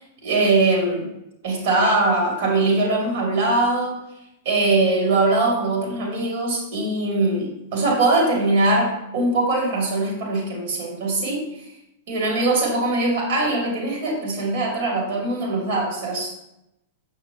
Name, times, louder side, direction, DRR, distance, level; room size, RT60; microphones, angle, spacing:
voice 1, 0.2-1.1 1.4-4.0 4.4-11.6 12.1-16.3, right 2 dB, 60° right, -2 dB, 2.6 m, -21 dB
6.7 x 6.0 x 2.9 m, 0.86 s
hypercardioid pair, 100°, 0 cm